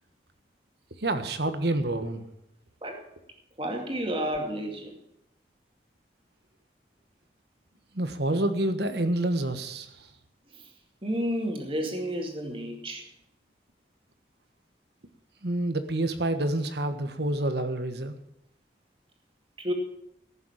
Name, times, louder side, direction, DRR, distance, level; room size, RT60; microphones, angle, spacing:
voice 1, 1.0-2.2 7.9-10.1 15.4-18.1, right 1 dB, 70° right, 9 dB, 1.4 m, -28 dB
voice 2, 3.6-4.9 10.5-10.7 11.0-13.0 19.6-19.7, equal, 30° right, 3 dB, 2.4 m, -31 dB
15.0 x 7.1 x 8.8 m, 0.78 s
head